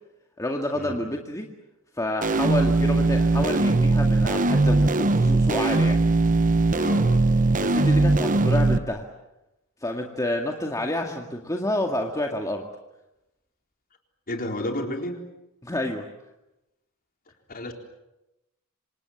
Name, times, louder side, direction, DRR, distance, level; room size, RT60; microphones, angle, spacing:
voice 1, 0.4-1.5 2.0-6.0 7.6-9.1 9.8-12.7 15.6-16.1, left 1 dB, 15° left, 1 dB, 2.1 m, -29 dB
sound 1, 2.2-8.8, right 2 dB, 40° right, 0.9 m, -20 dB
voice 2, 6.8-7.3 14.3-15.2 17.5-17.7, left 1 dB, 45° left, 3 dB, 4.0 m, -31 dB
27.5 x 27.0 x 7.2 m, 0.94 s
head